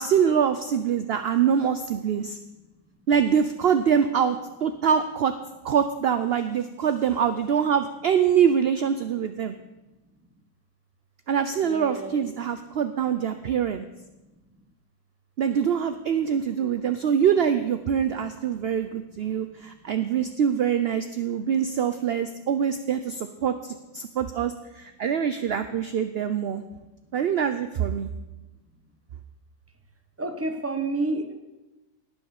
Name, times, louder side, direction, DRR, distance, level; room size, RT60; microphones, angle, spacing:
voice 1, 0.0-2.4 3.1-5.3 5.6-9.5 11.3-13.8 15.4-26.6 27.1-28.1, right 8 dB, 60° right, 9 dB, 0.6 m, -24 dB
voice 2, 11.6-12.3 30.2-31.3, right 2 dB, 10° right, 6 dB, 1.1 m, -29 dB
18.5 x 6.3 x 6.5 m, 1.0 s
omnidirectional pair, 1.6 m